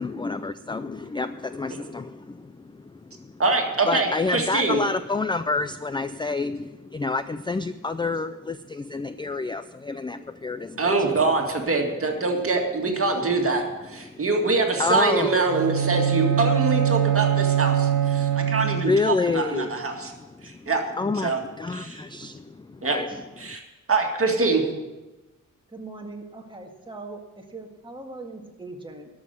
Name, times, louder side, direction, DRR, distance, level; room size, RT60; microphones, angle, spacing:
voice 1, 0.0-3.4 3.9-11.2 14.0-14.2 14.8-15.4 18.1-18.6 18.8-20.7 21.0-21.3 21.6-23.2 23.4-23.6, left 3 dB, 15° left, 12 dB, 0.3 m, -29 dB
voice 2, 3.4-4.8 10.8-20.1 20.4-20.8 21.2-21.4 21.7-22.0 22.8-23.0 23.4-23.6 23.9-24.6, right 3 dB, 40° right, 2 dB, 2.0 m, -24 dB
Bowed string instrument, 15.4-19.2, right 10 dB, 70° right, 1.2 m, -23 dB
voice 3, 25.7-29.1, right 2 dB, 15° right, 1 dB, 1.8 m, -40 dB
12.5 x 6.2 x 9.5 m, 1.1 s
wide cardioid pair, 120°, 33 cm